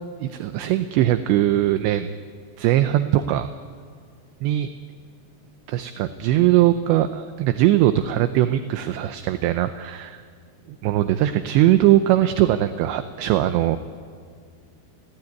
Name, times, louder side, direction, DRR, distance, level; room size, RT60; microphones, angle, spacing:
voice 1, 0.2-2.1 2.6-3.5 4.4-4.7 5.7-10.2 10.7-13.8, right 13 dB, 80° right, 9 dB, 2.7 m, -20 dB
28.5 x 18.0 x 9.5 m, 2.1 s
omnidirectional pair, 5.8 m